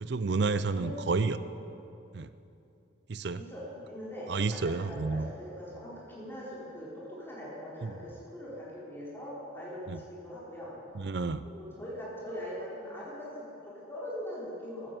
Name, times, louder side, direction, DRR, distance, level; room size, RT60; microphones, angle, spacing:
voice 1, 0.0-1.4 2.1-2.3 3.1-3.4 4.3-5.3 7.8-7.9 9.9-10.0 10.9-11.5, right 4 dB, 60° right, 13 dB, 0.5 m, -30 dB
voice 2, 3.3-10.7 11.4-14.9, equal, 10° left, -7 dB, 4.5 m, -41 dB
14.0 x 13.0 x 7.7 m, 2.8 s
head